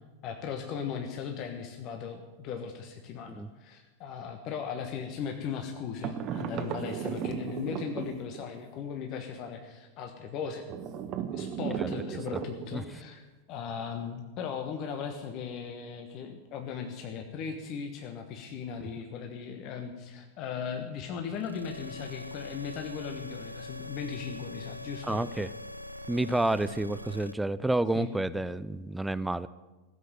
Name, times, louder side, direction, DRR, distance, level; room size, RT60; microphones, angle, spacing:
voice 1, 0.2-10.6 11.3-25.2 27.9-28.1, left 7 dB, 40° left, 5 dB, 1.3 m, -38 dB
sound 1, 6.0-8.6 10.7-13.0, right 8 dB, 35° right, 1.3 m, -35 dB
sound 2, 21.3-27.3, left 1 dB, 90° right, 0.6 m, -43 dB
voice 2, 25.1-25.5 26.1-29.5, right 2 dB, 5° right, 15 dB, 0.4 m, -29 dB
16.0 x 8.1 x 9.4 m, 1.2 s
figure-of-eight pair, 90°, 0 cm